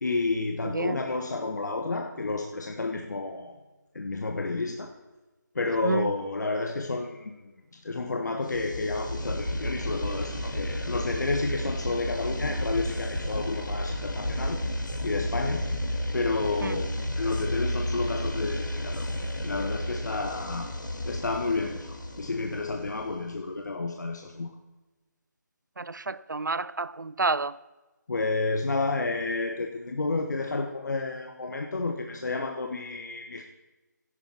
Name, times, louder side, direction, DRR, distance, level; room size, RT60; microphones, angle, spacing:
voice 1, 0.0-3.6 3.9-4.9 5.5-14.6 15.0-15.6 16.1-20.7 21.0-24.5 28.1-33.4, left 3 dB, 65° left, 3 dB, 1.4 m, -31 dB
voice 2, 0.6-1.0 5.8-6.1 16.6-16.8 25.8-27.6, right 3 dB, 80° right, 18 dB, 0.6 m, -29 dB
sound 1, 8.5-23.3, left 1 dB, 80° left, 2.1 m, -32 dB
16.0 x 11.5 x 4.5 m, 1.1 s
figure-of-eight pair, 155°, 10 cm